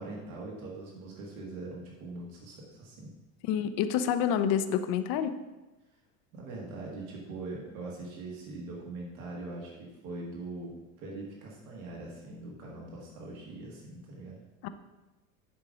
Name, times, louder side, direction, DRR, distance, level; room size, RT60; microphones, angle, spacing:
voice 1, 0.0-3.1 6.3-14.4, right 2 dB, 85° right, -2 dB, 2.0 m, -42 dB
voice 2, 3.5-5.3 14.6-14.7, left 8 dB, 60° left, 11 dB, 0.7 m, -28 dB
9.7 x 3.8 x 5.0 m, 1.1 s
supercardioid pair, 95°, 42 cm